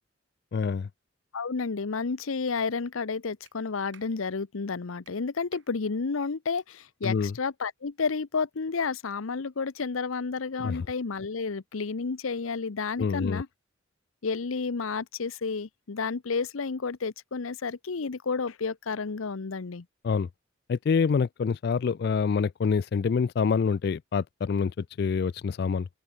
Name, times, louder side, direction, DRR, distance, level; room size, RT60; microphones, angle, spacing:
voice 1, 0.5-0.9 7.0-7.3 10.6-10.9 13.0-13.4 20.0-20.3 20.7-25.9, left 5 dB, 50° left, 0.3 m, -26 dB
voice 2, 1.3-13.5 14.2-19.9, left 4 dB, 85° left, 0.7 m, -31 dB
Clapping, 3.4-3.6 3.9-4.1 5.0-5.2 5.5-5.7 6.6-6.7 7.0-7.2, right 7 dB, 65° right, 4.1 m, -55 dB
open air
head